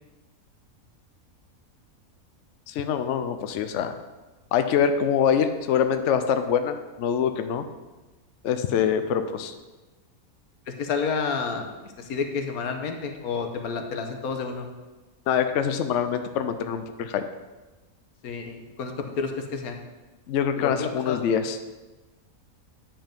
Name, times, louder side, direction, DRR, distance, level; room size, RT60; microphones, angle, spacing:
voice 1, 2.7-3.9 4.5-7.6 8.4-9.5 15.3-17.2 20.3-21.6, left 8 dB, 65° left, 8 dB, 0.8 m, -24 dB
voice 2, 10.7-11.7 12.1-14.7 18.2-19.8 20.6-21.2, left 5 dB, 85° left, 5 dB, 1.4 m, -30 dB
8.9 x 5.6 x 5.1 m, 1.2 s
omnidirectional pair, 1.5 m